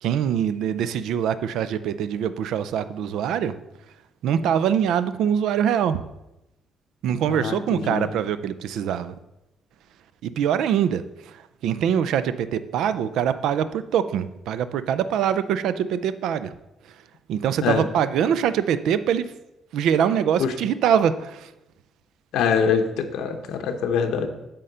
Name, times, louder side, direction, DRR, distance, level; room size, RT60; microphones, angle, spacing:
voice 1, 0.0-3.6 4.2-6.0 7.0-9.2 10.2-16.5 17.3-19.3 19.7-21.5, right 8 dB, 75° right, 13 dB, 0.4 m, -23 dB
voice 2, 7.3-8.1 17.6-17.8 20.4-20.5 22.3-24.3, left 6 dB, 85° left, 5 dB, 0.8 m, -24 dB
8.5 x 3.8 x 6.7 m, 0.93 s
cardioid pair, 175°, 0 cm